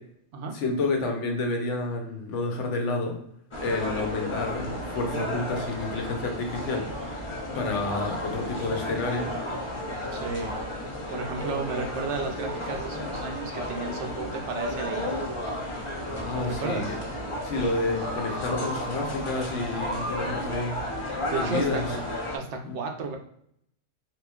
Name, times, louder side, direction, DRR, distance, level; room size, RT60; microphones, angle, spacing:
voice 1, 0.5-3.2 3.6-7.2 7.5-9.4 15.9-17.0 17.4-21.8 22.6-22.8, left 3 dB, 75° left, 2 dB, 1.0 m, -30 dB
sound 1, 3.5-22.4, left 1 dB, 35° left, 0.5 m, -33 dB
voice 2, 10.1-10.6 11.1-15.1 16.3-17.0 21.2-21.8 22.3-23.2, right 3 dB, 70° right, 3 dB, 0.9 m, -33 dB
3.7 x 3.0 x 2.3 m, 0.70 s
omnidirectional pair, 1.3 m